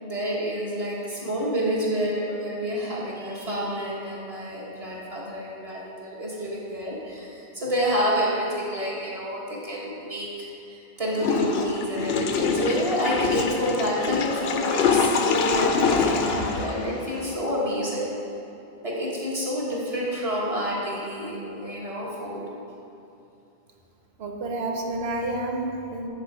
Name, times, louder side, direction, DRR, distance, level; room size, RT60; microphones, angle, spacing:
voice 1, 0.0-18.1 18.8-22.4, equal, 35° right, -5 dB, 1.5 m, -28 dB
Water / Toilet flush, 11.2-17.4, left 5 dB, 75° left, 0.8 m, -25 dB
voice 2, 24.2-26.1, right 2 dB, 75° right, 2 dB, 1.1 m, -29 dB
10.0 x 4.1 x 4.7 m, 2.8 s
omnidirectional pair, 1.0 m